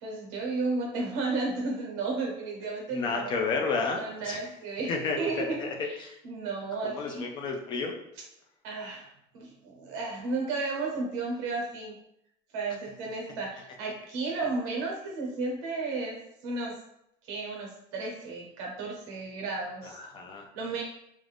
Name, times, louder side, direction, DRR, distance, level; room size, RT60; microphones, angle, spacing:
voice 1, 0.0-3.3 4.0-4.9 5.2-5.9 6.2-7.2 8.6-9.1 9.3-12.0 12.5-16.2 16.4-16.7 17.3-20.0 20.5-20.8, right 3 dB, 75° right, 0 dB, 1.0 m, -33 dB
voice 2, 2.9-4.5 4.9-6.2 6.8-7.9 19.8-20.5, left 4 dB, 30° left, 2 dB, 0.3 m, -32 dB
2.4 x 2.4 x 3.4 m, 0.78 s
cardioid pair, 170°, 16 cm